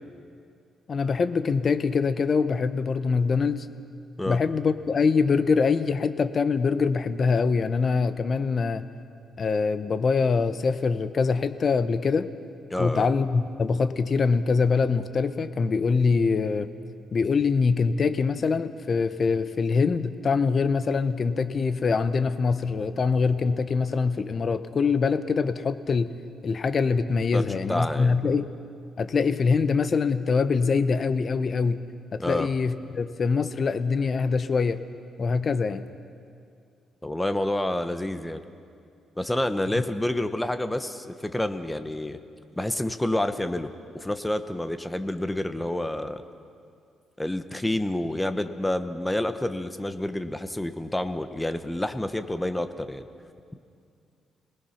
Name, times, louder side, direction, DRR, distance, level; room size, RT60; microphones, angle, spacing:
voice 1, 0.9-3.7 4.3-8.9 9.4-12.3 12.8-16.7 17.1-26.1 26.4-28.5 29.0-31.8 32.1-34.8 35.2-35.9, left 5 dB, 40° left, 11 dB, 0.9 m, -24 dB
voice 2, 12.7-13.1 27.3-28.2 32.2-32.5 37.0-38.4 39.2-42.2 42.6-46.2 47.2-53.1, left 1 dB, 10° left, 9 dB, 1.0 m, -28 dB
30.0 x 19.5 x 5.8 m, 2.4 s
cardioid pair, 135°, 0 cm